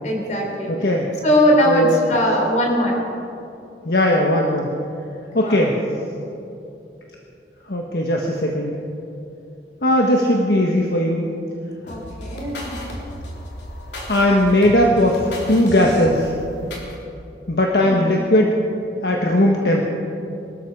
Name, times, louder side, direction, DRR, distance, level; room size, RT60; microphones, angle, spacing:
voice 1, 0.0-0.7 1.2-3.0 5.3-5.6 11.8-12.8 17.8-18.0, equal, 45° left, 0 dB, 3.7 m, -20 dB
voice 2, 0.7-1.1 1.7-2.0 3.8-4.7 5.3-5.8 7.7-8.8 9.8-11.2 14.1-16.3 17.5-18.5 19.0-19.8, left 1 dB, 65° left, 0 dB, 1.4 m, -18 dB
sound 1, 11.9-16.9, equal, 85° left, 3.5 m, -34 dB
23.5 x 13.0 x 4.7 m, 2.8 s
head